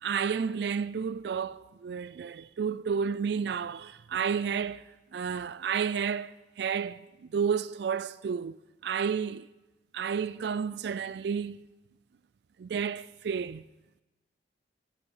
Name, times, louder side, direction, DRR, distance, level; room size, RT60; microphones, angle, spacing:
voice 1, 0.0-8.6 8.8-9.5 9.9-11.7 12.6-13.6, right 6 dB, 70° right, 0.3 m, -31 dB
11.5 x 11.5 x 6.4 m
head